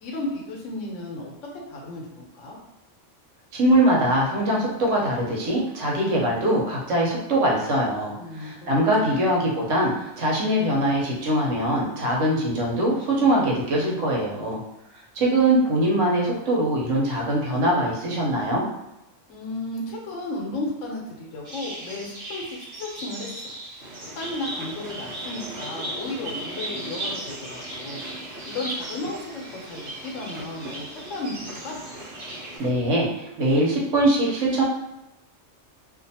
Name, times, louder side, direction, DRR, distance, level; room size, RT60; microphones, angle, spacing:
voice 1, 0.0-2.6 8.2-9.2 19.3-23.6 24.0-28.0 28.4-31.8, left 2 dB, 80° left, -1 dB, 1.1 m, -34 dB
voice 2, 3.5-14.6 15.1-18.7 32.6-34.6, right 1 dB, 90° right, -3 dB, 1.1 m, -22 dB
sound 1, 21.4-32.6, right 1 dB, 45° right, 0.5 m, -37 dB
sound 2, 23.8-32.7, right 2 dB, 65° right, 1.0 m, -41 dB
2.5 x 2.4 x 2.7 m, 0.92 s
omnidirectional pair, 1.3 m